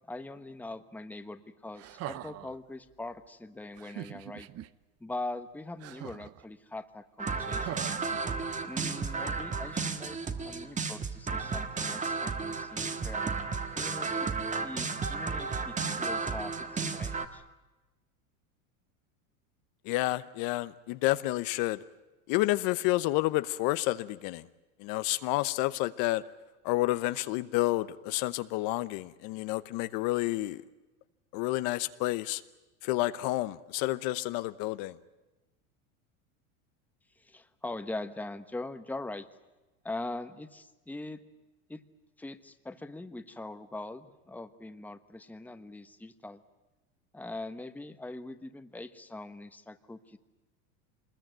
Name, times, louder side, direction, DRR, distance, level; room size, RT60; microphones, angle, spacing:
voice 1, 0.1-4.5 5.0-7.9 8.7-13.3 13.7-14.3 14.6-17.4 37.2-39.3 39.8-41.2 41.7-41.8 42.2-46.4 47.1-50.2, left 2 dB, 5° left, 9 dB, 1.2 m, -42 dB
sound 1, 1.8-2.6 3.8-4.7 5.8-6.4 7.5-8.7 9.7-9.8, right 14 dB, 35° right, 0.8 m, -42 dB
sound 2, 7.2-17.3, right 4 dB, 20° right, 1.5 m, -33 dB
voice 2, 19.8-21.8 22.3-24.4 24.8-26.2 26.6-30.6 31.3-32.4 32.8-35.0, left 18 dB, 55° left, 13 dB, 0.9 m, -30 dB
25.0 x 21.0 x 9.1 m, 1.1 s
supercardioid pair, 125°, 41 cm